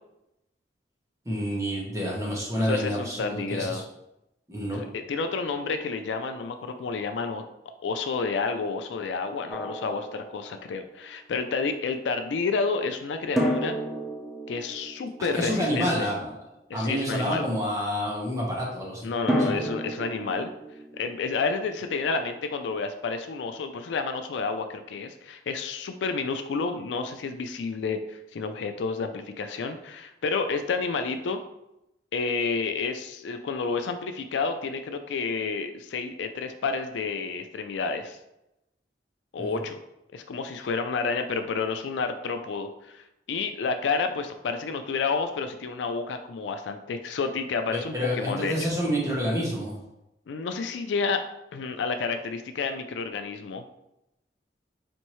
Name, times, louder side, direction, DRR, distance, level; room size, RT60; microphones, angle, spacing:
voice 1, 1.2-3.8 4.5-4.8 15.2-16.3 16.7-19.1 19.4-19.7 39.4-39.6 47.7-49.8, equal, 20° right, -3 dB, 1.0 m, -28 dB
voice 2, 2.6-3.8 4.7-7.4 7.8-13.8 14.5-16.1 16.7-17.5 19.0-20.5 20.9-31.4 32.1-38.2 39.3-39.8 40.1-48.5 50.3-51.2 51.5-53.6, left 4 dB, 80° left, 7 dB, 0.4 m, -30 dB
Drum, 9.5-10.9 13.4-16.3 19.3-22.1, equal, ahead, 0.5 m, -32 dB
4.3 x 2.7 x 3.0 m, 0.88 s
head